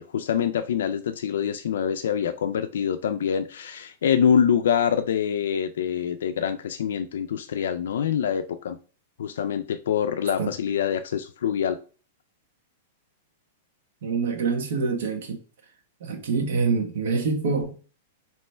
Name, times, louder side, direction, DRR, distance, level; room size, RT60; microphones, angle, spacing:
voice 1, 0.0-8.8 9.2-11.8, left 8 dB, 85° left, 0.3 m, -25 dB
voice 2, 14.0-15.4 16.0-17.8, right 4 dB, 70° right, 1.1 m, -25 dB
3.3 x 3.0 x 4.2 m
supercardioid pair, 150°, 0 cm